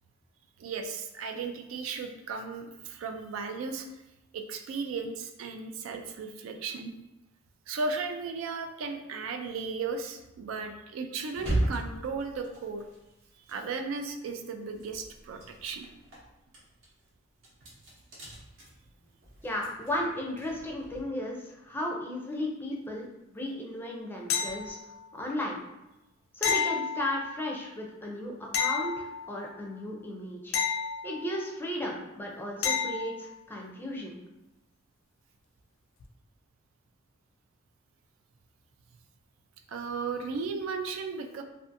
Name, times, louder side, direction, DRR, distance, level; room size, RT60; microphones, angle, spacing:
voice 1, 0.6-3.9 4.3-6.9 7.7-12.8 13.5-15.9 39.7-41.4, right 4 dB, 90° right, 6 dB, 0.3 m, -35 dB
sound 1, 11.3-14.3 14.6-21.0, right 1 dB, 70° right, 0.8 m, -37 dB
voice 2, 19.4-23.1 23.3-24.8 25.1-25.6 26.3-30.6 31.0-34.2, left 1 dB, 10° left, -1 dB, 0.4 m, -35 dB
sound 2, 24.3-25.1 26.4-27.5 28.5-29.6 30.5-31.6 32.6-33.2 36.0-36.1, left 6 dB, 80° left, 0.3 m, -31 dB
2.5 x 2.4 x 2.5 m, 0.94 s
head